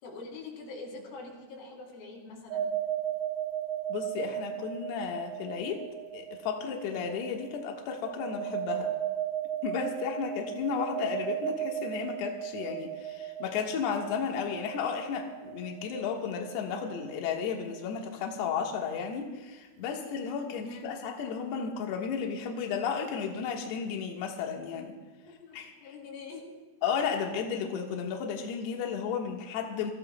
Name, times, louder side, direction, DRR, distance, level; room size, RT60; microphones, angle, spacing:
voice 1, 0.0-2.8 20.6-21.0 25.2-25.6 25.8-26.7, left 3 dB, 90° left, -3 dB, 6.1 m, -44 dB
sound 1, 2.5-18.1, right 11 dB, 75° right, 2.6 m, -37 dB
voice 2, 3.9-5.8 6.1-8.9 9.6-25.0 25.5-25.7 26.8-29.9, left 6 dB, 65° left, 1 dB, 3.1 m, -33 dB
25.5 x 15.5 x 2.3 m, 1.3 s
omnidirectional pair, 5.8 m